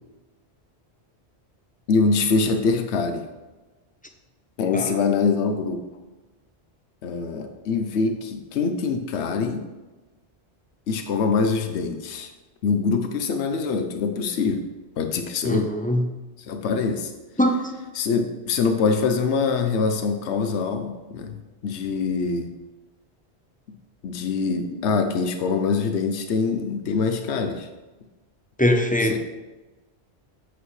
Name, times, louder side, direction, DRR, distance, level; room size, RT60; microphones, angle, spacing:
voice 1, 1.9-3.3 4.6-5.8 7.0-9.6 10.9-12.3 12.6-14.7 15.0-15.7 16.5-17.1 17.9-21.4 21.6-22.5 24.0-27.7 29.1-29.2, left 4 dB, 85° left, 6 dB, 1.0 m, -24 dB
voice 2, 15.4-16.1 17.4-17.7 28.6-29.2, left 1 dB, 10° left, 4 dB, 0.5 m, -22 dB
8.1 x 8.0 x 3.2 m, 1.2 s
omnidirectional pair, 1.1 m